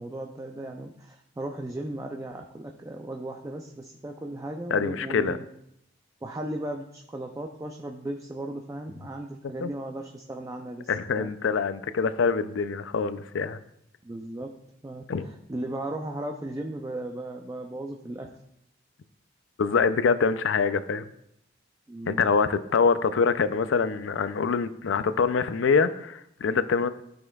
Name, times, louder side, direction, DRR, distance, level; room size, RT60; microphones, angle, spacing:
voice 1, 0.0-5.4 6.2-11.3 14.0-14.5 14.8-18.3 21.9-22.3, right 1 dB, 15° right, 0.4 m, -36 dB
voice 2, 4.7-5.4 9.6-9.7 10.9-13.6 15.1-15.3 19.6-21.1 22.1-26.9, left 5 dB, 80° left, 0.4 m, -25 dB
13.0 x 5.4 x 2.3 m
head